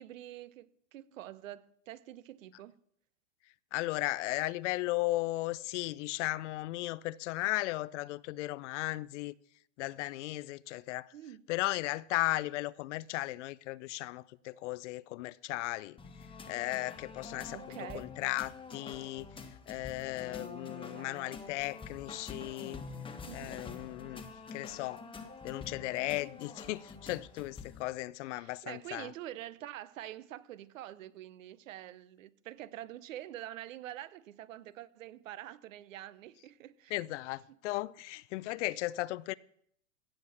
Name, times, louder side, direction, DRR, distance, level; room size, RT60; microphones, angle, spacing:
voice 1, 0.0-2.8 11.1-11.5 17.5-18.1 20.9-21.4 23.3-23.6 28.3-36.9 37.5-37.6, right 13 dB, 80° right, 0.9 m, -46 dB
voice 2, 3.7-9.3 9.8-11.1 11.5-16.0 16.5-22.8 23.3-24.2 24.5-25.0 25.4-29.1 36.9-39.3, left 18 dB, 65° left, 0.6 m, -36 dB
sound 1, 16.0-27.8, left 4 dB, 15° left, 1.2 m, -47 dB
16.5 x 6.6 x 5.8 m
hypercardioid pair, 120°, 39 cm